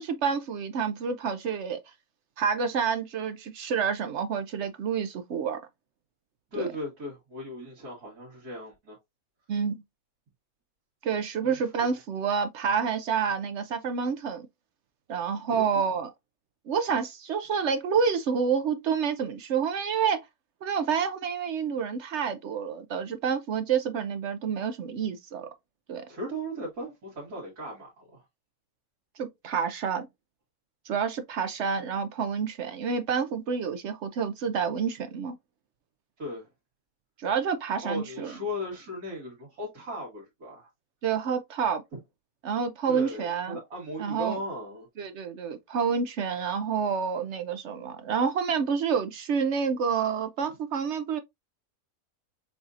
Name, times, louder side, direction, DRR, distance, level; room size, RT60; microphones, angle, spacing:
voice 1, 0.0-1.8 2.4-5.6 6.6-6.7 9.5-9.8 11.0-14.5 15.1-16.1 16.7-20.2 20.6-25.5 25.9-26.0 29.2-30.1 30.9-35.4 37.2-38.4 41.0-41.8 42.4-43.6 44.0-44.4 45.0-51.2, right 6 dB, 65° right, 0.7 m, -28 dB
voice 2, 6.5-9.0 11.4-12.0 15.2-15.9 26.1-28.2 36.2-36.5 37.8-40.7 42.9-44.9, left 1 dB, 80° right, 2.3 m, -37 dB
6.9 x 2.7 x 2.4 m
omnidirectional pair, 1.6 m